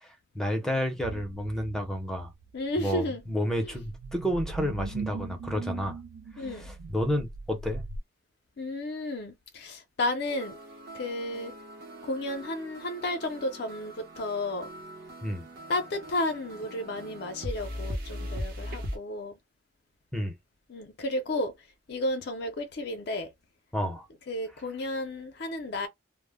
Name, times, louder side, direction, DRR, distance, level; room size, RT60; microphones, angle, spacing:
voice 1, 0.0-2.3 2.8-6.0 6.4-7.8 15.2-15.5 20.1-20.4 23.7-24.1, equal, 5° left, 0.6 m, -31 dB
sound 1, 1.0-8.0, right 4 dB, 75° right, 0.4 m, -40 dB
voice 2, 2.5-3.2 3.6-3.7 6.4-6.7 8.6-10.6 10.9-11.5 12.0-14.7 15.7-19.3 20.7-21.6 21.9-23.3 24.3-25.9, left 1 dB, 55° left, 0.5 m, -32 dB
sound 2, 10.3-19.0, equal, 50° right, 0.8 m, -40 dB
2.0 x 2.0 x 3.4 m
head